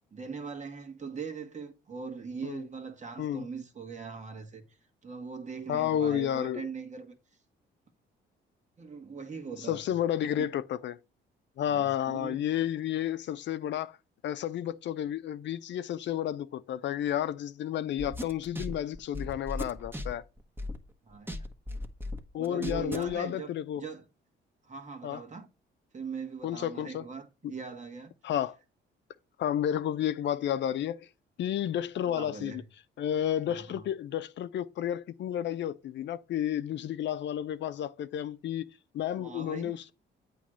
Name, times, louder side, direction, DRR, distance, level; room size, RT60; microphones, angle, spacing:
voice 1, 0.1-4.6 5.0-7.2 8.8-9.8 10.2-10.5 11.7-12.4 21.0-21.5 22.4-24.0 24.6-25.5 25.9-28.1 32.1-32.6 33.5-33.8 39.1-39.8, right 5 dB, 35° right, 1.5 m, -41 dB
voice 2, 5.7-6.6 9.6-11.0 11.6-14.0 14.2-20.2 22.3-23.8 25.0-25.2 26.4-27.0 28.2-28.6 29.4-31.1 31.4-32.6 33.0-38.7 38.9-39.9, left 10 dB, 65° left, 0.5 m, -31 dB
sound 1, 18.0-20.9 21.3-23.1, left 1 dB, 10° right, 1.1 m, -36 dB
8.5 x 3.1 x 6.2 m
cardioid pair, 90°, 20 cm